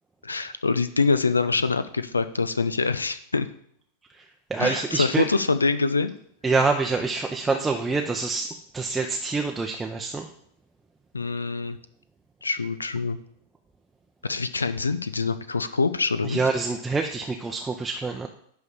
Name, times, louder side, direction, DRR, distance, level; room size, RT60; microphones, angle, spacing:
voice 1, 0.2-3.5 4.6-6.1 11.1-11.8 12.4-13.2 14.2-16.4, left 4 dB, 75° left, 12 dB, 0.6 m, -25 dB
voice 2, 4.5-5.3 6.4-8.5 8.7-10.3 16.2-18.3, right 4 dB, 10° right, 2 dB, 0.7 m, -26 dB
10.5 x 3.6 x 7.0 m, 0.68 s
figure-of-eight pair, 90°, 0 cm